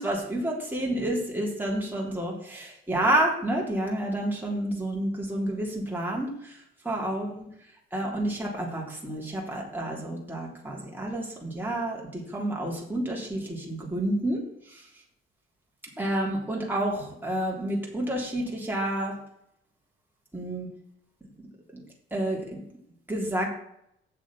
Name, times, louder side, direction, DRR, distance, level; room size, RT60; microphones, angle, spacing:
voice 1, 0.0-6.6 6.8-7.5 7.9-14.4 14.7-14.8 16.0-19.1 20.3-20.7 21.7-21.8 22.1-22.6 23.1-23.5, right 1 dB, 5° right, -3 dB, 3.2 m, -29 dB
7.9 x 6.1 x 6.1 m, 0.74 s
hypercardioid pair, 45°, 30 cm